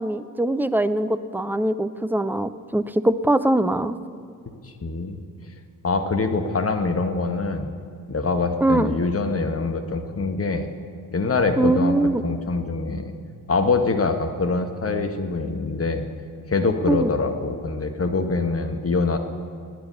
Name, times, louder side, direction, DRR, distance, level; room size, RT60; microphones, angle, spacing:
voice 1, 0.0-4.0 8.6-8.9 11.6-12.2 16.9-17.1, right 1 dB, 5° right, 11 dB, 0.5 m, -22 dB
voice 2, 4.6-5.2 5.8-7.7 8.1-10.7 11.1-12.0 12.2-13.1 13.5-16.0 16.5-19.2, left 3 dB, 30° left, 7 dB, 1.5 m, -24 dB
16.5 x 9.6 x 7.0 m, 2.2 s
figure-of-eight pair, 40°, 48 cm